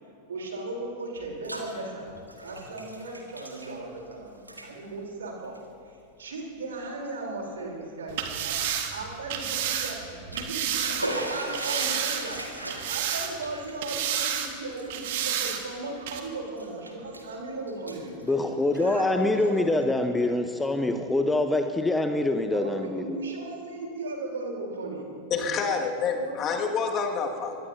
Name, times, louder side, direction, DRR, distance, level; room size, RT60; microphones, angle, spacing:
voice 1, 0.3-12.5 12.9-18.3 18.8-19.8 20.1-20.3 22.5-25.8 26.1-26.4, right 2 dB, 65° right, 0 dB, 3.6 m, -37 dB
Bathtub (filling or washing), 1.1-1.7 2.0-4.1 4.4-4.7 5.4-5.6 6.2-6.3 6.8-6.9 10.0-16.2 16.6-17.3 17.7-19.0, right 1 dB, 85° right, 1.8 m, -38 dB
sound 1, 8.1-11.1 11.5-12.4 12.7-13.5 13.8-14.5 14.9-15.6 16.1-16.2, right 9 dB, 50° right, 1.7 m, -30 dB
voice 2, 18.2-23.0, left 2 dB, 10° left, 7 dB, 0.9 m, -25 dB
voice 3, 25.3-27.6, left 5 dB, 30° left, 2 dB, 2.0 m, -28 dB
23.5 x 20.5 x 2.8 m, 2.5 s
figure-of-eight pair, 90°, 0 cm